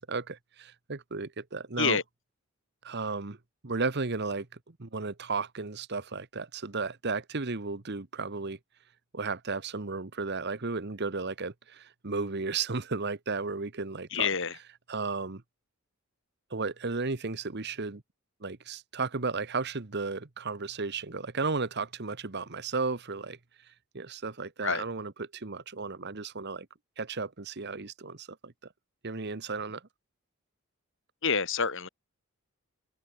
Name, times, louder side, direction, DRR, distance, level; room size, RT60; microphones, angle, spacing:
voice 1, 0.1-2.0 2.8-3.4 3.6-8.6 9.1-14.3 14.9-15.4 16.5-18.0 18.4-23.4 23.9-26.7 27.0-28.5 29.0-29.8, right 4 dB, 50° right, 1.2 m, -34 dB
voice 2, 14.1-14.5 24.6-24.8 31.2-31.9, left 6 dB, 55° left, 2.7 m, -27 dB
open air
head